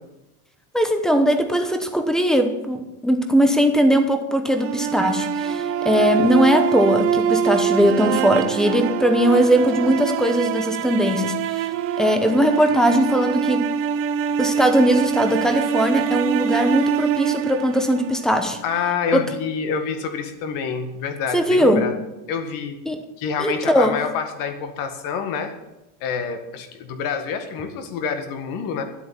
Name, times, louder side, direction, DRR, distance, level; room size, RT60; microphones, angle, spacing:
voice 1, 0.7-11.7 12.0-13.7 14.4-18.6 19.1-19.2 21.3-21.9 22.9-23.0 23.4-24.0, equal, ahead, 6 dB, 0.9 m, -19 dB
sound 1, 4.5-18.6, right 9 dB, 30° right, 0.5 m, -24 dB
voice 2, 18.6-22.0 22.3-22.8 23.2-25.5 26.0-28.8, left 6 dB, 45° left, 7 dB, 1.9 m, -27 dB
12.5 x 8.1 x 8.8 m, 0.94 s
cardioid pair, 165°, 47 cm